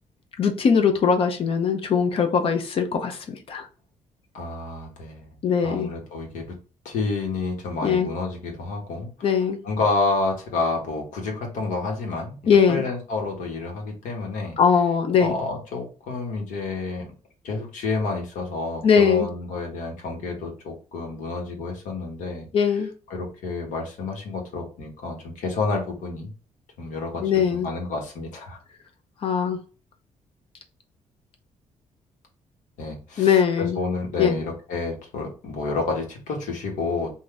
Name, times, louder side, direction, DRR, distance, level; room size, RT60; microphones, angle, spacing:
voice 1, 0.4-3.7 5.4-5.9 7.8-8.1 9.2-9.6 12.5-12.8 14.6-15.3 18.8-19.3 22.5-22.9 27.2-27.7 29.2-29.6 33.2-33.8 34.2-34.4, left 6 dB, 45° left, 5 dB, 0.6 m, -20 dB
voice 2, 4.3-5.3 5.6-6.6 6.8-9.1 9.6-14.6 15.2-17.1 17.4-22.5 23.1-26.3 26.8-28.6 32.8-37.1, left 3 dB, 85° left, 1 dB, 1.3 m, -29 dB
3.8 x 2.6 x 3.3 m, 0.36 s
cardioid pair, 165°, 13 cm